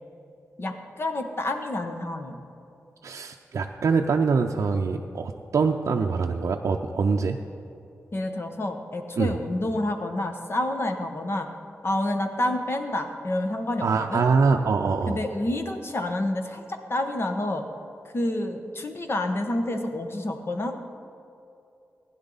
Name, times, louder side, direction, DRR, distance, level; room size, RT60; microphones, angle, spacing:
voice 1, 0.6-2.4 8.1-11.5 11.8-14.2 15.1-16.6 16.9-17.6 18.1-20.9, left 1 dB, 50° left, 5 dB, 1.3 m, -28 dB
voice 2, 3.0-7.4 9.2-9.3 13.8-15.2, right 5 dB, 70° right, 2 dB, 0.5 m, -24 dB
16.0 x 10.5 x 4.0 m, 2.7 s
cardioid pair, 50°, 5 cm